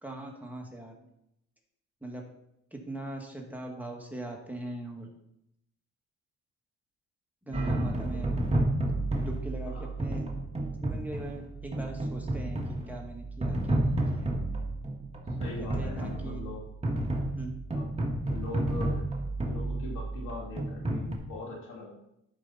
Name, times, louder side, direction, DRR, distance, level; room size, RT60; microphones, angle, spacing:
voice 1, 0.0-1.1 2.0-2.2 2.7-5.1 7.4-8.3 9.2-10.2 10.8-12.6 12.9-14.3 15.7-16.4 17.3-17.5, right 1 dB, 5° right, 0 dB, 1.8 m, -40 dB
voice 2, 7.5-8.2 9.7-9.9 15.4-16.7 17.7-19.0 19.4-22.0, left 2 dB, 85° left, -1 dB, 2.6 m, -42 dB
sound 1, 7.5-21.2, right 1 dB, 20° right, 1.7 m, -31 dB
11.5 x 5.2 x 4.1 m, 0.80 s
cardioid pair, 90°, 30 cm